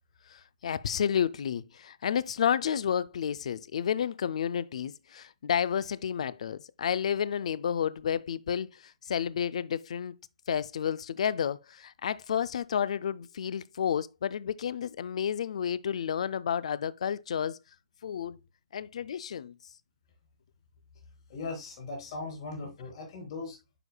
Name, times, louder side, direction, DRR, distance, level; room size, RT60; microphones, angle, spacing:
voice 1, 0.3-10.2 10.5-17.6 18.0-18.4 18.7-19.6, left 8 dB, 65° left, 0.4 m, -31 dB
voice 2, 21.3-23.6, left 3 dB, 50° left, 3.3 m, -39 dB
9.8 x 4.8 x 2.2 m
hypercardioid pair, 145°, 4 cm